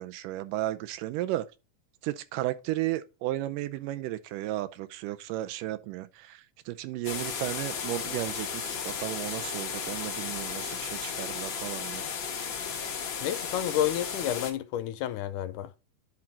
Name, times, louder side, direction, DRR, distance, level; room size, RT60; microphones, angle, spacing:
voice 1, 0.0-1.5 2.0-12.1, right 15 dB, 85° right, 2.2 m, -34 dB
sound 1, 7.0-14.5, left 6 dB, 60° left, 1.4 m, -34 dB
voice 2, 13.2-15.7, left 12 dB, 80° left, 2.1 m, -30 dB
10.5 x 3.8 x 4.2 m
omnidirectional pair, 3.7 m